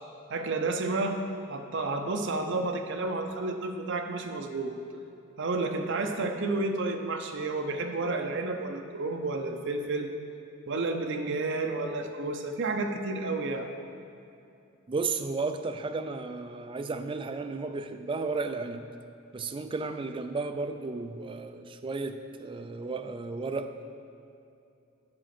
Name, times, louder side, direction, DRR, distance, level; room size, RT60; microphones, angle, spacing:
voice 1, 0.3-1.2 1.5-4.7 5.4-10.1 10.7-13.7, right 3 dB, 60° right, 5 dB, 0.6 m, -31 dB
voice 2, 14.9-18.8 19.3-23.8, right 3 dB, 25° right, 8 dB, 0.3 m, -33 dB
7.7 x 5.0 x 5.9 m, 2.6 s
head